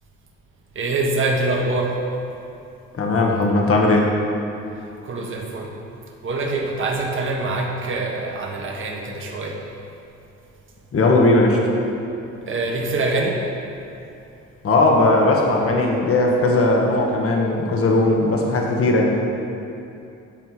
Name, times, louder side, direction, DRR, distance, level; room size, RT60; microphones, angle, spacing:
voice 1, 0.7-2.0 5.0-5.7 6.2-9.6 12.4-13.4, right 2 dB, 40° right, -1 dB, 1.5 m, -24 dB
voice 2, 2.9-4.1 10.9-11.6 14.6-19.2, left 2 dB, 50° left, 0 dB, 1.4 m, -18 dB
9.0 x 4.5 x 7.5 m, 2.7 s
cardioid pair, 90°, 30 cm